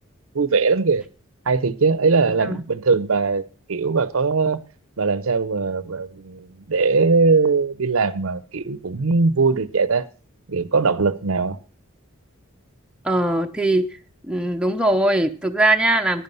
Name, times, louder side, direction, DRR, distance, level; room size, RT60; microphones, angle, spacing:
voice 1, 0.3-1.0 1.5-4.6 5.0-10.1 10.5-11.6, right 4 dB, 75° right, 0.7 m, -20 dB
voice 2, 13.0-14.0 14.2-16.2, right 1 dB, 5° right, 0.7 m, -20 dB
11.0 x 10.0 x 5.6 m
head